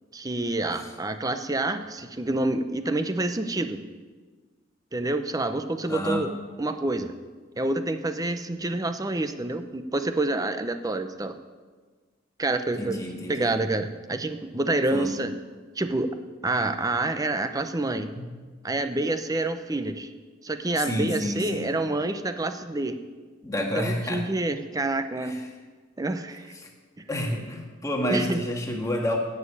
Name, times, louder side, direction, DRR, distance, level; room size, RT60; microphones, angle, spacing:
voice 1, 0.1-3.9 4.9-6.3 6.6-7.2 7.5-11.4 12.4-13.0 13.3-15.3 15.8-16.2 16.4-18.1 18.6-20.1 20.4-23.0 23.6-25.4 26.0-26.5 27.0-27.1 28.1-28.4, right 2 dB, 20° right, 9 dB, 0.7 m, -28 dB
voice 2, 5.9-6.2 12.8-13.5 14.9-15.1 18.1-18.3 20.7-21.7 23.4-24.2 25.2-25.5 26.5-26.7 27.1-29.2, left 1 dB, 15° left, 1 dB, 1.7 m, -29 dB
10.5 x 7.3 x 8.7 m, 1.4 s
head